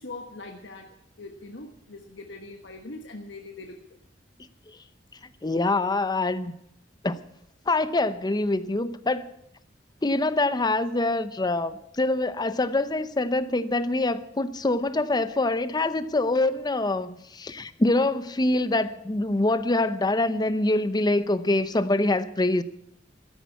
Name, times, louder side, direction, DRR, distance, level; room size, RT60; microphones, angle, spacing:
voice 1, 0.0-3.8, left 2 dB, 85° left, 1.3 m, -42 dB
voice 2, 5.4-6.5 7.0-7.2 7.7-9.3 10.0-22.6, left 2 dB, 25° left, 0.7 m, -25 dB
13.0 x 10.5 x 8.2 m
head